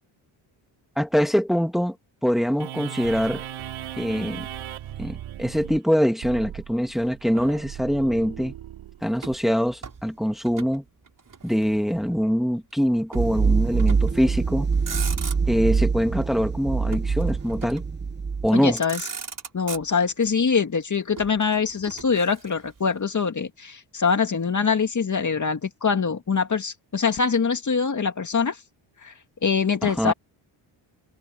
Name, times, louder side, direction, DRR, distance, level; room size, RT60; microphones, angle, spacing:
voice 1, 1.0-2.0 2.2-3.4 4.0-4.5 5.0-8.5 9.0-10.8 11.4-14.7 15.5-17.8 18.4-18.8 29.8-30.1, equal, ahead, 2.4 m, -23 dB
sound 1, 2.6-9.4, right 11 dB, 80° right, 4.8 m, -37 dB
Motor vehicle (road), 9.2-10.8 11.1-12.1 13.1-13.4 13.8-14.2 14.7-15.7 16.9-18.0 18.5-18.6 18.8-20.3 21.2-22.8, right 5 dB, 40° right, 5.3 m, -38 dB
sound 2, 13.2-18.5, right 5 dB, 25° right, 0.9 m, -24 dB
voice 2, 18.5-19.0 19.5-28.6 29.0-29.1 29.4-30.1, left 5 dB, 40° left, 2.2 m, -24 dB
cardioid pair, 70°, 47 cm